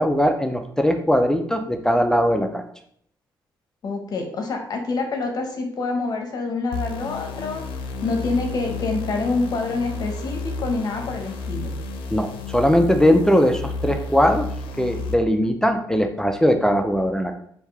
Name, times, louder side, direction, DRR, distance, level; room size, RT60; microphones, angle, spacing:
voice 1, 0.0-2.6 12.1-14.5 14.8-17.4, equal, 5° left, 6 dB, 0.4 m, -20 dB
voice 2, 3.8-7.6 8.0-11.7, left 3 dB, 50° left, 3 dB, 0.8 m, -26 dB
sound 1, 6.7-15.2, left 3 dB, 90° left, 0.5 m, -32 dB
3.5 x 2.7 x 4.5 m, 0.65 s
cardioid pair, 100°, 8 cm